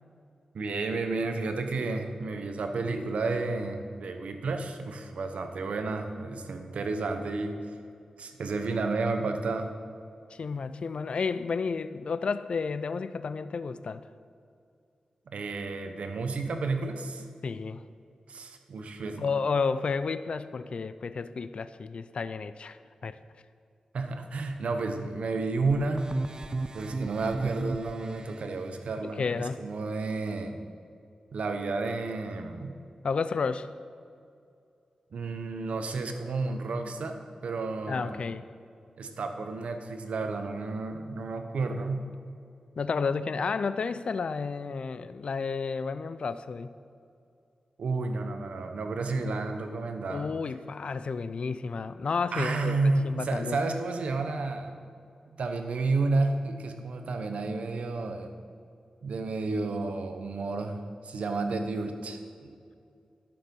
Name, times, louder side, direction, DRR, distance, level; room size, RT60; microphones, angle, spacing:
voice 1, 0.5-7.8 8.2-9.7 15.3-17.2 18.3-19.2 23.9-26.2 26.7-30.6 31.3-32.8 35.1-38.2 39.0-42.1 47.8-50.3 52.3-54.7 55.4-58.3 59.0-62.5, right 3 dB, 85° right, 6 dB, 0.9 m, -31 dB
voice 2, 10.3-14.1 17.4-17.8 19.2-23.2 29.0-29.6 33.0-33.7 37.9-38.5 42.8-46.7 50.1-53.6, left 5 dB, 60° left, 13 dB, 0.4 m, -31 dB
sound 1, 25.7-28.4, right 3 dB, 40° right, 0.4 m, -35 dB
11.5 x 6.9 x 5.4 m, 2.5 s
wide cardioid pair, 100°, 2 cm